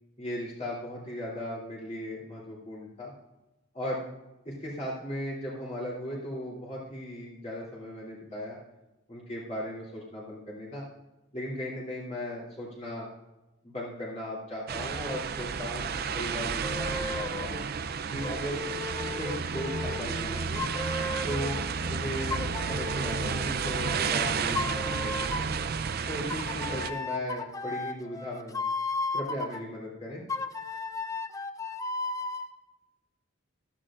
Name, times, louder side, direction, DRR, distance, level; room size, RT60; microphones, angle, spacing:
voice 1, 0.2-3.1 3.7-4.1 4.4-8.6 9.1-10.8 11.3-13.1 13.6-15.9 16.1-17.6 18.1-18.6 19.1-20.6 21.2-25.5 26.1-28.6 29.1-30.2, left 1 dB, 35° left, -6 dB, 3.0 m, -37 dB
sound 1, 14.7-26.9, right 5 dB, 50° right, 0.5 m, -31 dB
sound 2, 16.6-17.6 18.2-21.6 22.3-24.2 24.5-25.6 26.3-29.6 30.3-32.5, left 3 dB, 15° left, 0.5 m, -35 dB
15.0 x 12.0 x 2.5 m, 0.99 s
head